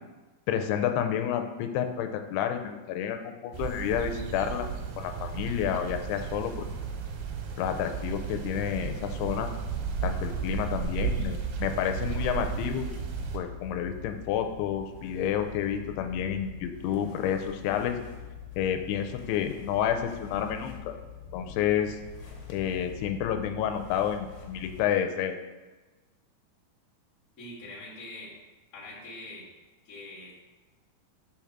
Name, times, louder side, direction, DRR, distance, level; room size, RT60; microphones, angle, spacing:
voice 1, 0.5-4.7 5.0-6.7 7.6-9.5 10.0-12.9 13.3-18.0 18.6-20.9 21.3-22.0 22.5-25.4, left 9 dB, 90° left, 6 dB, 2.6 m, -30 dB
sound 1, 3.5-13.4, right 6 dB, 85° right, 2.7 m, -34 dB
sound 2, 11.5-24.8, left 6 dB, 70° left, 2.4 m, -45 dB
voice 2, 27.4-28.3 28.7-29.4 29.8-30.5, left 2 dB, 55° left, -6 dB, 0.8 m, -43 dB
5.8 x 3.6 x 5.8 m, 1.2 s
omnidirectional pair, 4.5 m